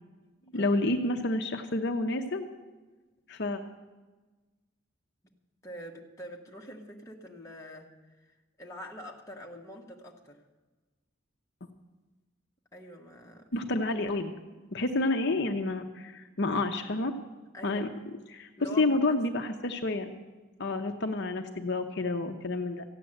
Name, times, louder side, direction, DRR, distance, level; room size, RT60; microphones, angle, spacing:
voice 1, 0.5-2.5 3.3-3.6 13.5-14.3 14.7-17.1 17.6-17.9 18.3-18.5 18.8-20.1 20.6-22.8, left 2 dB, 55° left, 5 dB, 0.8 m, -29 dB
voice 2, 5.6-10.4 12.7-13.5 17.5-17.9 18.6-19.2, equal, 15° left, -2 dB, 1.4 m, -45 dB
15.0 x 9.2 x 7.8 m, 1.2 s
head